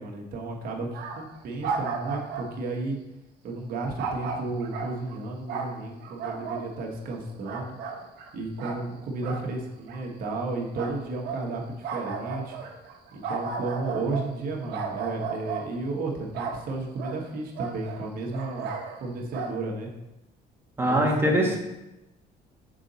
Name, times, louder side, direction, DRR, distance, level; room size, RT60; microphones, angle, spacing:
voice 1, 0.0-3.0 3.4-7.7 8.3-12.6 13.1-18.7 19.0-19.9 20.8-21.6, right 2 dB, 60° right, 0 dB, 1.3 m, -33 dB
sound 1, 0.9-1.3 1.6-2.5 4.0-5.2 5.5-6.7 7.1-8.3 8.6-8.9 9.2-9.5 9.9-10.4 10.7-11.5 11.8-14.4 14.7-15.7 16.3-16.7 16.9-17.2 17.5-19.1 19.3-19.5, right 5 dB, 75° right, 0.9 m, -34 dB
voice 2, 20.8-21.6, right 1 dB, 15° right, -1 dB, 1.3 m, -22 dB
6.2 x 4.0 x 4.0 m, 0.94 s
cardioid pair, 110°, 17 cm